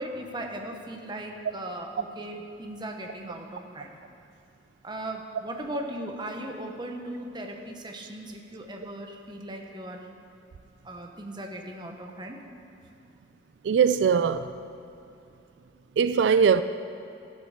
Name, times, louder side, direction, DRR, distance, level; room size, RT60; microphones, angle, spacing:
voice 1, 0.0-4.0 4.8-10.1 10.8-12.4, right 1 dB, 25° right, 1.1 m, -38 dB
voice 2, 13.6-14.5 16.0-16.6, right 6 dB, 90° right, 0.4 m, -21 dB
12.5 x 7.5 x 6.5 m
head